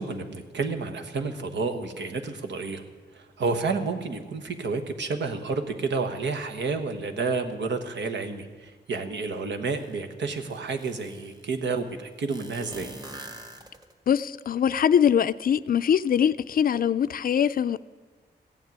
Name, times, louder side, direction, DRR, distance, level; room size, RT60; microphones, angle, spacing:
voice 1, 0.0-2.8 3.1-12.9, right 4 dB, 90° right, 1.2 m, -30 dB
sound 1, 9.8-9.9 10.3-11.4 12.3-14.1, right 1 dB, 25° right, 1.7 m, -43 dB
voice 2, 14.1-17.8, left 8 dB, 55° left, 0.4 m, -22 dB
15.0 x 7.4 x 9.3 m
wide cardioid pair, 95°, 18 cm